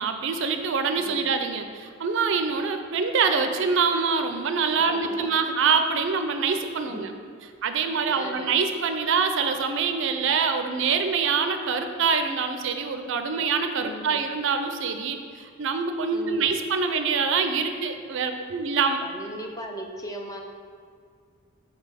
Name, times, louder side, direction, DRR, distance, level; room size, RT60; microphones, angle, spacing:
voice 1, 0.0-7.1 7.6-19.0, right 5 dB, 65° right, 7 dB, 0.4 m, -25 dB
voice 2, 1.0-1.3 4.9-5.3 5.7-5.8 6.9-7.2 8.1-8.5 13.8-14.2 16.1-16.5 19.0-20.4, equal, 15° left, 2 dB, 0.5 m, -38 dB
5.2 x 4.1 x 5.5 m, 2.2 s
head